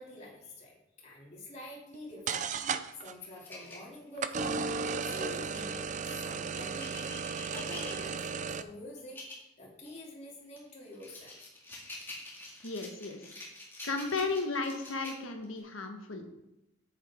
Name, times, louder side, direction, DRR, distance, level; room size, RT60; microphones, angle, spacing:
voice 1, 0.0-2.5 3.0-4.7 5.1-7.1 7.5-8.1 8.5-11.3, left 1 dB, 35° left, -4 dB, 2.8 m, -47 dB
sound 1, 1.9-2.0 2.3-3.1 4.2-8.6, right 5 dB, 40° right, 0.4 m, -35 dB
sound 2, 2.9-4.5 5.1-8.3 9.0-9.5 9.9-10.0 10.6-15.6, left 2 dB, 10° left, 2.1 m, -47 dB
voice 2, 12.6-13.3 13.8-16.4, left 3 dB, 85° left, 4 dB, 1.4 m, -34 dB
9.7 x 8.0 x 3.6 m, 0.91 s
head